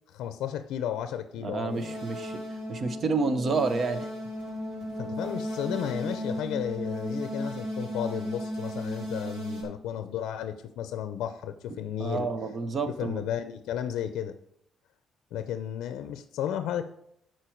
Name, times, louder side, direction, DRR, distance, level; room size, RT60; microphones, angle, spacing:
voice 1, 0.1-2.0 5.0-12.3 13.0-14.4 15.3-16.9, left 10 dB, 85° left, 10 dB, 0.5 m, -33 dB
voice 2, 1.4-2.4 2.7-4.1 12.0-13.2, right 4 dB, 35° right, 10 dB, 0.7 m, -29 dB
sound 1, 1.4-9.6, equal, 65° right, 3.6 m, -35 dB
11.5 x 4.5 x 4.5 m, 0.72 s
cardioid pair, 170°, 0 cm